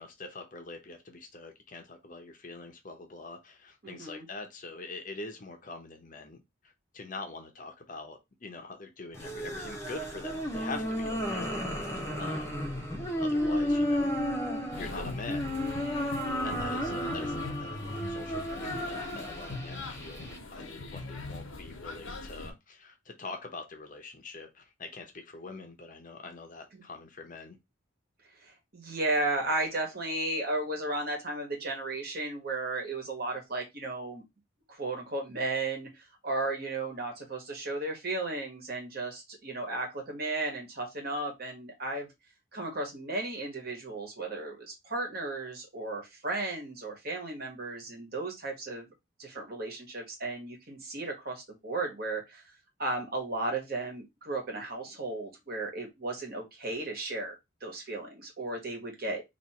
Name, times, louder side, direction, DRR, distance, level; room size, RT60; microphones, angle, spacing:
voice 1, 0.0-6.4 6.9-11.5 12.2-12.7 13.2-14.1 14.8-15.5 16.4-27.6, left 3 dB, 40° left, 0.8 m, -44 dB
voice 2, 3.8-4.3 12.1-12.7 26.7-26.8 28.4-34.2 34.7-42.1 42.5-48.9 49.2-52.4 52.8-57.3 57.6-59.2, right 2 dB, 50° right, 1.4 m, -34 dB
sound 1, 9.1-20.4, equal, 15° left, 0.8 m, -33 dB
sound 2, 14.7-22.5, left 2 dB, 80° left, 1.0 m, -41 dB
3.0 x 2.9 x 4.2 m
head